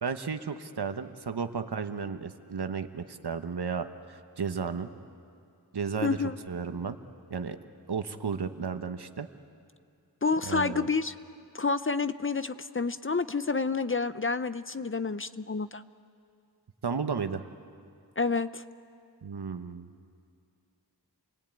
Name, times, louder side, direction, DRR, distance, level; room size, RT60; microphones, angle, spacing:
voice 1, 0.0-4.9 5.7-6.2 6.5-7.0 7.3-7.6 7.9-9.3 10.4-10.9 16.8-17.4 19.2-19.9, right 5 dB, 70° right, 8 dB, 1.2 m, -33 dB
voice 2, 6.0-6.4 10.2-11.1 11.5-15.8 18.2-18.6, left 4 dB, 30° left, 13 dB, 0.6 m, -29 dB
29.0 x 20.0 x 9.1 m, 2.4 s
wide cardioid pair, 85°, 41 cm